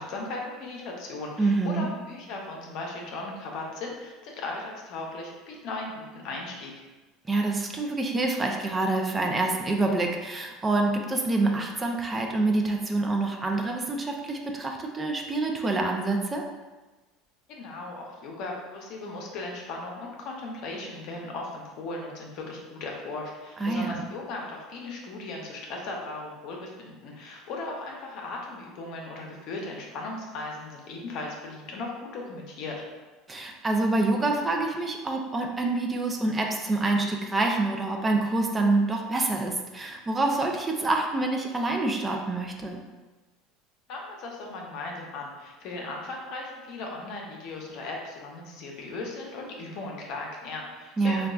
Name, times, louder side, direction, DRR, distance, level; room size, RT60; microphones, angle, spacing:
voice 1, 0.0-6.7 17.5-32.8 43.9-51.3, left 2 dB, 60° left, 0 dB, 0.7 m, -37 dB
voice 2, 1.4-1.9 7.3-16.4 23.6-24.0 33.3-42.8 51.0-51.3, right 2 dB, 20° right, 2 dB, 0.4 m, -26 dB
3.7 x 2.3 x 2.3 m, 1.2 s
supercardioid pair, 110°, 0 cm